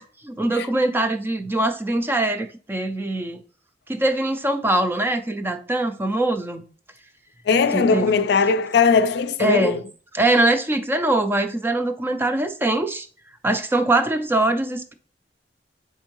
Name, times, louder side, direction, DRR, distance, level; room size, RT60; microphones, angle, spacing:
voice 1, 0.0-3.4 3.9-6.6 7.7-8.1 9.4-9.8 10.1-13.1 13.4-14.9, right 2 dB, 10° right, 0.3 m, -22 dB
voice 2, 7.5-9.8, left 5 dB, 65° left, 0.4 m, -19 dB
4.4 x 3.6 x 2.9 m
head